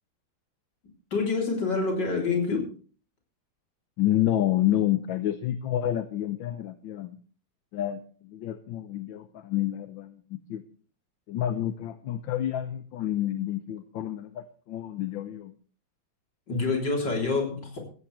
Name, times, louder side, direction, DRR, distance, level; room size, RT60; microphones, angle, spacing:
voice 1, 1.1-2.7 16.5-17.8, left 4 dB, 60° left, 1 dB, 4.3 m, -27 dB
voice 2, 4.0-7.2 7.7-10.6 11.3-15.5, left 12 dB, 75° left, 10 dB, 1.6 m, -29 dB
16.0 x 15.0 x 3.3 m, 0.40 s
omnidirectional pair, 2.2 m